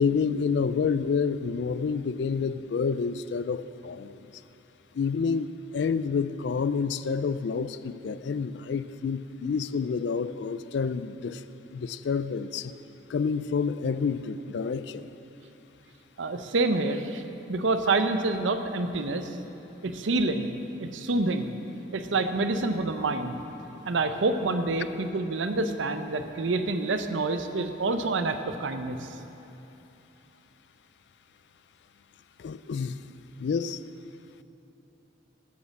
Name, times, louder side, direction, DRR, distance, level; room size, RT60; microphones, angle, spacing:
voice 1, 0.0-4.3 4.9-11.4 11.7-12.7 13.1-15.1 32.4-33.0 33.4-33.8, left 5 dB, 60° left, 14 dB, 0.3 m, -28 dB
voice 2, 16.2-17.2 17.5-19.3 19.8-20.5 20.8-21.5 21.9-23.4 23.8-29.1, right 3 dB, 75° right, 8 dB, 0.6 m, -27 dB
10.5 x 6.4 x 7.1 m, 2.9 s
head